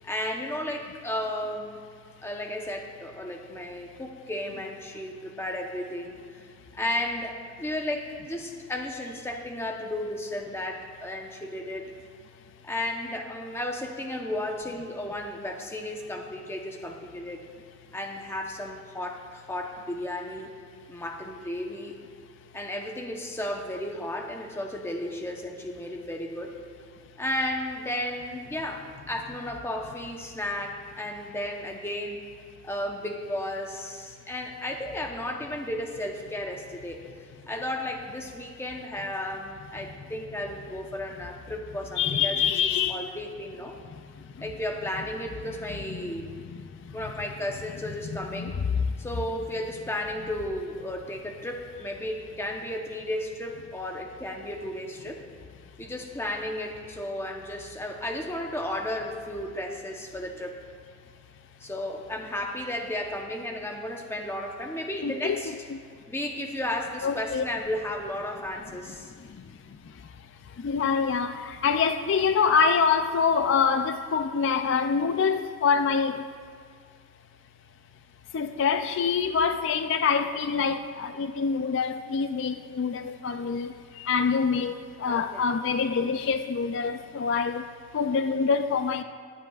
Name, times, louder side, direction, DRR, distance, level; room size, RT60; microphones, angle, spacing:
voice 1, 0.0-1.8 2.2-6.2 6.8-11.9 12.6-17.5 17.9-20.5 20.9-21.9 22.5-26.6 27.2-32.2 32.6-37.0 37.5-42.4 42.9-43.8 44.4-46.3 46.9-48.5 49.0-55.2 55.8-60.6 61.6-65.5 66.1-69.1 85.1-85.4, left 1 dB, 10° left, 0.8 m, -34 dB
voice 2, 42.0-43.0 45.9-46.0 48.1-48.5 65.0-65.4 65.7-65.8 67.0-67.4 70.6-76.2 78.3-83.7 84.0-84.7 85.0-87.6 87.9-89.0, left 6 dB, 60° left, 0.3 m, -25 dB
18.5 x 10.0 x 2.4 m
head